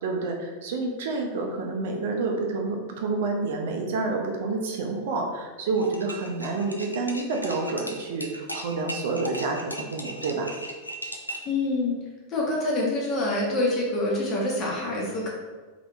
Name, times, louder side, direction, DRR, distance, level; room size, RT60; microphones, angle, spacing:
voice 1, 0.0-10.5, right 3 dB, 55° right, 2 dB, 0.5 m, -29 dB
sound 1, 5.8-11.6, right 1 dB, 85° left, 0.4 m, -37 dB
voice 2, 11.4-12.0 12.3-15.3, left 2 dB, 30° left, -3 dB, 1.0 m, -26 dB
3.3 x 2.9 x 2.5 m, 1.4 s
figure-of-eight pair, 90°, 0 cm